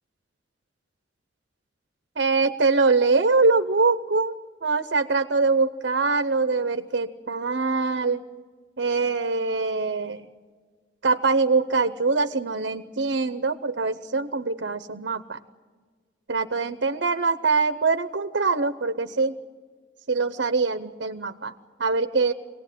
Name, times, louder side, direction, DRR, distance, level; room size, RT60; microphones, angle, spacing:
voice 1, 2.2-4.3 4.6-8.2 8.8-10.3 11.0-15.4 16.3-19.4 20.1-21.5 21.8-22.3, right 4 dB, 80° right, 9 dB, 0.9 m, -23 dB
24.5 x 18.5 x 9.2 m, 1.5 s
head